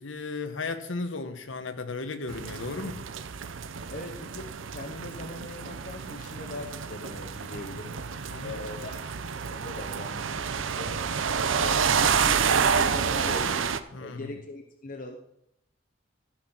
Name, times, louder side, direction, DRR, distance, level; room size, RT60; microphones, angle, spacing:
voice 1, 0.0-3.1 8.3-8.7 13.9-14.3, left 3 dB, 80° left, 1.2 m, -35 dB
sound 1, 2.3-13.8, right 6 dB, 90° right, 0.7 m, -29 dB
voice 2, 3.9-8.0 8.4-11.0 11.4-13.6 14.0-15.1, left 2 dB, 45° left, 1.1 m, -41 dB
14.5 x 6.0 x 6.1 m
head